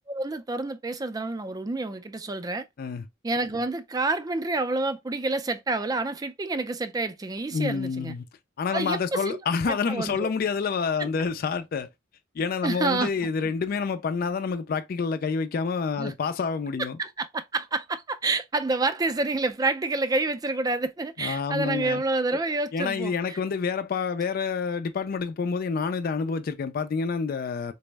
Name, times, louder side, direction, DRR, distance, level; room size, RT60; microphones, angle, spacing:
voice 1, 0.1-2.6 3.2-8.1 8.7-9.4 9.7-10.3 11.0-11.1 12.6-13.1 16.0-16.1 17.0-23.4, right 3 dB, 20° right, 0.3 m, -28 dB
voice 2, 7.5-8.2 8.6-11.9 12.4-17.0 21.2-22.0 22.7-27.7, left 5 dB, 50° left, 0.4 m, -28 dB
4.2 x 2.0 x 3.2 m
head